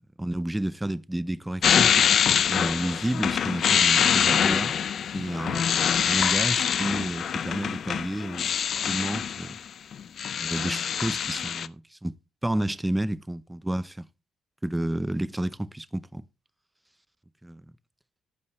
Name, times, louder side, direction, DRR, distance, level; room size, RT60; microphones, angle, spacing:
voice 1, 0.2-4.7 5.1-5.7 6.0-8.5 8.9-9.6 10.4-12.1 12.4-14.1 14.6-16.2 17.4-17.6, right 1 dB, 10° right, 0.5 m, -31 dB
sound 1, 1.6-9.6 9.9-11.7, left 8 dB, 60° left, 0.4 m, -24 dB
14.5 x 5.5 x 3.0 m
cardioid pair, 90°, 0 cm